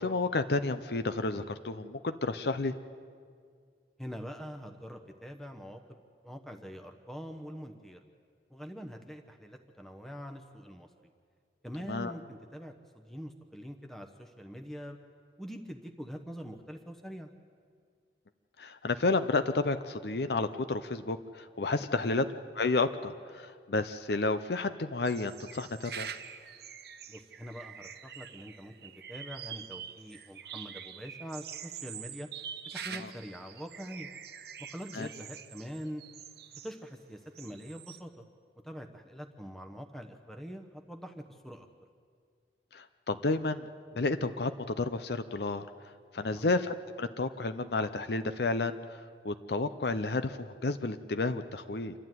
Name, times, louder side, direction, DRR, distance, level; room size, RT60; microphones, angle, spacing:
voice 1, 0.0-2.7 11.9-12.1 18.6-22.2 22.6-26.1 33.0-33.1 34.9-35.1 42.7-43.7 43.9-45.7 46.1-48.8 49.2-51.9, left 3 dB, 65° left, 10 dB, 0.7 m, -31 dB
voice 2, 4.0-8.0 8.5-10.9 11.6-15.0 15.4-17.3 22.0-22.2 27.1-32.3 32.7-34.1 34.7-36.0 36.6-38.2 38.6-41.7 46.2-46.5, equal, ahead, 4 dB, 1.0 m, -44 dB
sound 1, 25.0-36.8 37.3-38.0, right 8 dB, 65° right, 1.0 m, -45 dB
27.5 x 12.0 x 9.3 m, 2.1 s
head